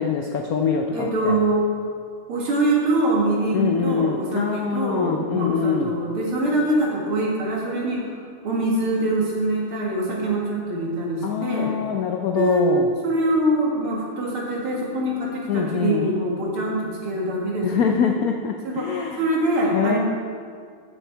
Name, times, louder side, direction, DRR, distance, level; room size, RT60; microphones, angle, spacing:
voice 1, 0.0-1.4 3.5-5.9 11.2-12.9 15.5-16.1 17.6-19.2 19.7-20.0, left 7 dB, 85° left, 3 dB, 0.8 m, -24 dB
voice 2, 0.9-1.7 2.3-8.0 8.4-11.7 12.3-12.7 13.0-18.0 18.6-20.0, right 1 dB, 80° right, -3 dB, 2.8 m, -24 dB
15.0 x 6.5 x 4.5 m, 2.1 s
omnidirectional pair, 2.3 m